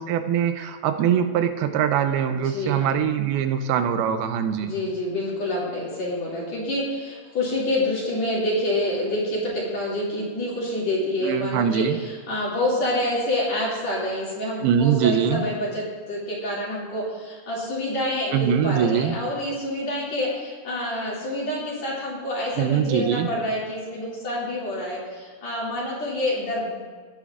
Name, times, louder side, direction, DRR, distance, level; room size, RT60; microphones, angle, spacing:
voice 1, 0.0-4.7 11.2-12.0 14.6-15.4 18.3-19.2 22.6-23.3, right 8 dB, 90° right, 7 dB, 2.5 m, -22 dB
voice 2, 2.3-3.0 4.6-26.8, left 1 dB, 50° left, -6 dB, 3.4 m, -27 dB
17.0 x 9.2 x 2.5 m, 1.5 s
omnidirectional pair, 4.3 m